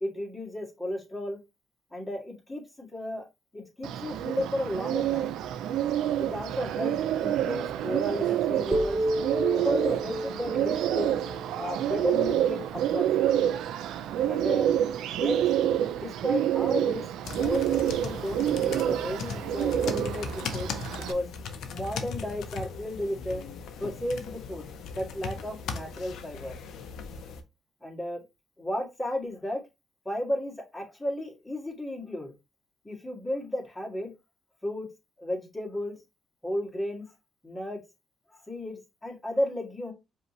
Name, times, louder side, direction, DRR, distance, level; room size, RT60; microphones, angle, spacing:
voice 1, 0.0-1.4 1.9-3.3 3.5-5.3 6.2-6.9 7.2-9.0 9.5-11.1 11.6-13.4 14.0-14.7 15.2-15.4 15.9-21.3 21.7-23.4 23.8-26.6 27.8-28.2 28.6-29.6 30.1-32.3 32.8-34.1 34.6-34.9 35.2-36.0 36.4-37.1 37.4-37.8 38.3-39.9, left 1 dB, 15° left, 0 dB, 1.7 m, -33 dB
Bird, 3.8-21.1, right 11 dB, 85° right, 0.4 m, -28 dB
sound 1, 8.7-12.8, right 1 dB, 40° right, 0.6 m, -32 dB
sound 2, 17.2-27.4, left 5 dB, 75° left, 0.7 m, -38 dB
5.0 x 2.8 x 3.0 m, 0.24 s
cardioid pair, 90°, 0 cm